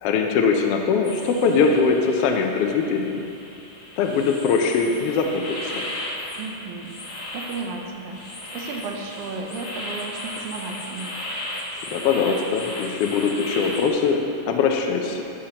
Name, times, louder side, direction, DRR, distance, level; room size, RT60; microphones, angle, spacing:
voice 1, 0.0-3.2 4.0-5.8 11.9-14.2 14.5-15.2, left 5 dB, 80° left, 3 dB, 1.4 m, -21 dB
sound 1, 1.0-13.9, left 1 dB, 50° left, 1.3 m, -35 dB
voice 2, 6.4-8.2 8.5-11.2, right 4 dB, 75° right, 1 dB, 1.5 m, -34 dB
13.0 x 5.8 x 2.9 m, 2.7 s
omnidirectional pair, 3.3 m